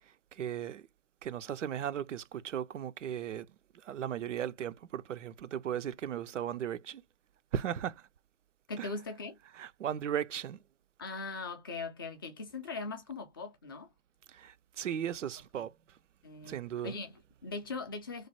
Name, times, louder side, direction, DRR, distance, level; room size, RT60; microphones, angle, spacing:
voice 1, 0.3-0.8 1.2-3.5 3.8-7.0 7.5-8.0 8.8-8.9 9.6-10.6 14.3-15.7 16.4-16.9, right 9 dB, 80° right, 0.5 m, -36 dB
voice 2, 8.7-9.4 11.0-13.9 15.6-15.7 16.2-16.6 16.8-18.3, left 3 dB, 20° left, 0.4 m, -40 dB
3.2 x 2.2 x 4.1 m
hypercardioid pair, 135°, 36 cm